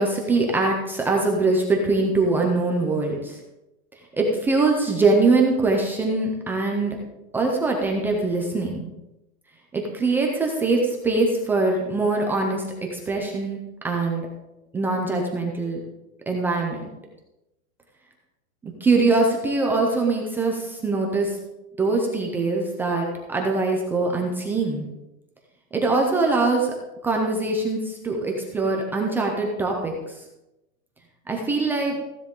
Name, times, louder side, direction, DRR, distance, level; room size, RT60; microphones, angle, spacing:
voice 1, 0.0-3.4 4.1-7.0 7.3-8.9 9.7-12.6 12.9-14.3 14.7-15.8 16.3-16.9 18.6-21.4 21.8-24.9 25.7-26.7 27.0-30.2 31.3-31.9, right 3 dB, 5° right, 0 dB, 0.4 m, -23 dB
15.0 x 10.5 x 3.6 m, 0.96 s
supercardioid pair, 155°, 42 cm